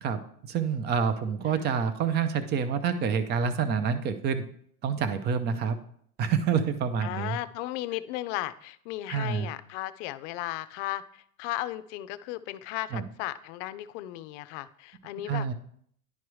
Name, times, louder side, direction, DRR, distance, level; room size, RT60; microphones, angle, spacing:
voice 1, 0.0-4.4 4.8-5.8 6.2-7.4 9.1-9.5 12.9-13.0 15.3-15.5, right 6 dB, 25° right, 11 dB, 0.5 m, -27 dB
voice 2, 7.0-15.5, left 15 dB, 55° left, 13 dB, 0.6 m, -35 dB
10.5 x 4.7 x 3.1 m, 0.64 s
supercardioid pair, 135°, 43 cm